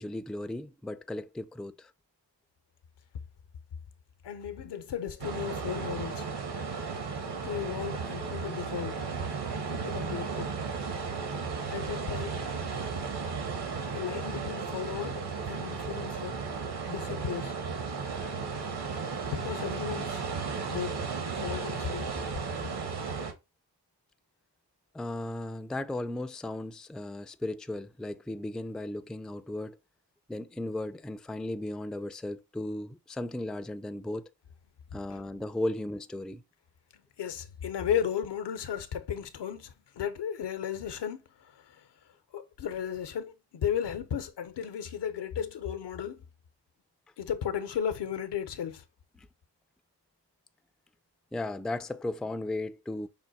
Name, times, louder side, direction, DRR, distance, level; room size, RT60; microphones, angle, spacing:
voice 1, 0.0-1.9 24.9-29.8 30.3-34.3 34.9-36.4 49.2-49.3 51.3-53.1, left 1 dB, ahead, 0.4 m, -36 dB
voice 2, 4.2-6.3 7.4-9.0 9.7-10.5 11.7-12.5 13.9-16.5 16.8-17.5 19.3-20.2 20.7-22.1 37.2-41.9 42.3-46.2 47.2-48.8, left 8 dB, 75° left, 0.8 m, -35 dB
sound 1, 5.2-23.3, right 5 dB, 70° right, 1.2 m, -35 dB
5.7 x 2.2 x 4.0 m
cardioid pair, 60°, 42 cm